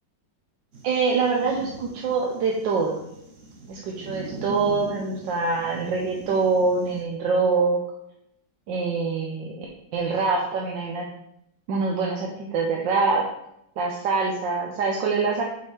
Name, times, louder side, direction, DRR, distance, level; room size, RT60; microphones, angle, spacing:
sound 1, 0.7-7.0, right 1 dB, 50° right, 1.3 m, -41 dB
voice 1, 0.8-3.0 3.7-7.8 8.7-9.7 9.9-11.1 11.7-13.2 13.8-15.4, right 4 dB, 85° right, 0 dB, 1.5 m, -24 dB
5.5 x 4.8 x 4.8 m, 0.78 s
omnidirectional pair, 1.9 m